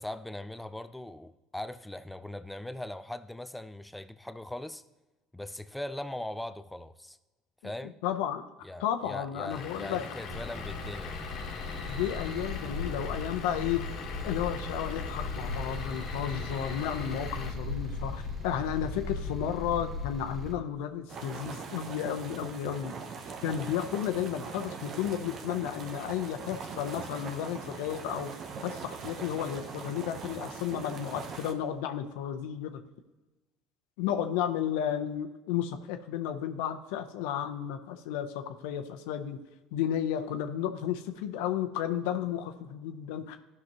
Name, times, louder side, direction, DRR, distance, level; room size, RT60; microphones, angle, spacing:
voice 1, 0.0-4.8 5.3-7.2 7.6-8.0 8.6-11.2, left 1 dB, 5° left, 0.4 m, -40 dB
voice 2, 7.6-8.4 8.8-10.0 11.9-13.8 14.2-22.9 23.4-28.3 28.6-32.8 34.0-39.4 39.7-43.4, left 10 dB, 80° left, 0.7 m, -33 dB
Vehicle / Engine, 9.5-17.5, left 6 dB, 60° left, 1.3 m, -42 dB
sound 1, 10.2-20.5, left 2 dB, 30° right, 1.3 m, -37 dB
sound 2, 21.1-31.5, right 5 dB, 45° right, 0.9 m, -41 dB
13.0 x 6.0 x 3.0 m
supercardioid pair, 90°, 0 cm